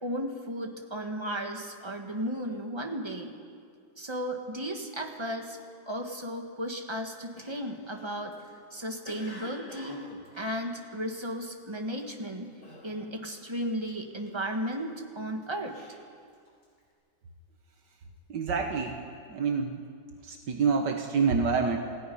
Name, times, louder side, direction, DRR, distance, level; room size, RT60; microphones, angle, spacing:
voice 1, 0.0-3.3 4.0-5.6 5.9-8.4 8.7-10.1 10.3-12.5 12.8-15.7, equal, 15° right, 3 dB, 1.7 m, -34 dB
Cough, 7.3-11.4 11.9-12.2 12.6-13.3 13.6-14.8 15.3-16.8, left 1 dB, 70° left, 4.9 m, -48 dB
voice 2, 18.3-19.0 19.3-19.8 20.2-21.8, right 5 dB, 75° right, 4 dB, 1.8 m, -27 dB
29.0 x 16.5 x 5.5 m, 2.1 s
omnidirectional pair, 1.9 m